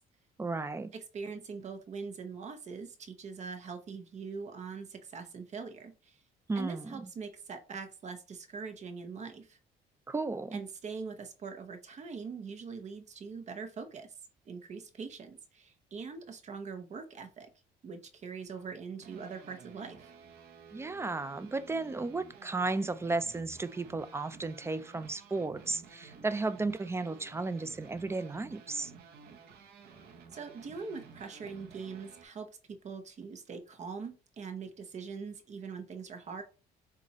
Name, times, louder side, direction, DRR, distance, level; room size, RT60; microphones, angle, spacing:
voice 1, 0.4-0.9 6.5-7.1 10.1-10.6 20.7-28.9, right 3 dB, 15° right, 0.4 m, -34 dB
voice 2, 0.9-6.2 6.5-9.6 10.5-14.1 14.5-17.5 17.8-20.1 30.3-36.4, right 5 dB, 45° right, 0.9 m, -42 dB
sound 1, 18.5-32.3, right 5 dB, 70° right, 1.0 m, -53 dB
7.1 x 2.5 x 2.9 m
cardioid pair, 110°, 17 cm